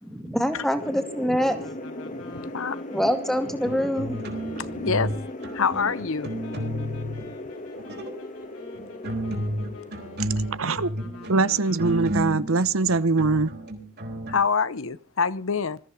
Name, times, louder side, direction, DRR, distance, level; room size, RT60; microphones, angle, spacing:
voice 1, 0.0-1.7 2.9-4.2, equal, ahead, 2.3 m, -25 dB
sound 1, 0.8-13.2, left 1 dB, 35° left, 1.9 m, -39 dB
sound 2, 1.4-12.4, left 4 dB, 90° left, 5.1 m, -46 dB
sound 3, 3.6-5.2 5.4-7.2 7.7-8.2 8.7-14.3, equal, 50° right, 4.0 m, -32 dB
voice 2, 4.8-5.1 5.5-6.3 14.3-15.8, left 5 dB, 65° left, 0.9 m, -25 dB
voice 3, 10.2-10.9 11.3-13.5, right 3 dB, 65° right, 0.9 m, -23 dB
21.0 x 14.0 x 4.9 m
head